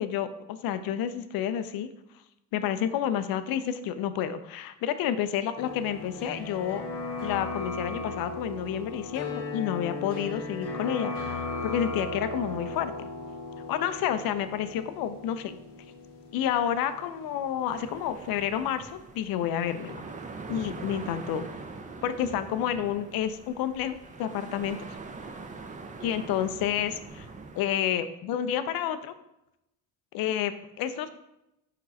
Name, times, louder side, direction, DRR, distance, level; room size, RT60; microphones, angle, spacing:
voice 1, 0.0-1.9 2.5-6.8 7.2-13.1 13.7-15.6 16.3-20.0 20.5-21.4 22.0-24.8 26.0-27.3 27.6-29.2 30.1-31.1, left 10 dB, 50° left, 11 dB, 0.5 m, -30 dB
sound 1, 5.5-17.3 17.5-17.6, left 3 dB, 85° left, 1.0 m, -36 dB
sound 2, 17.7-27.6, right 3 dB, 20° right, 0.5 m, -43 dB
4.4 x 4.0 x 2.6 m, 0.87 s
hypercardioid pair, 55°, 45 cm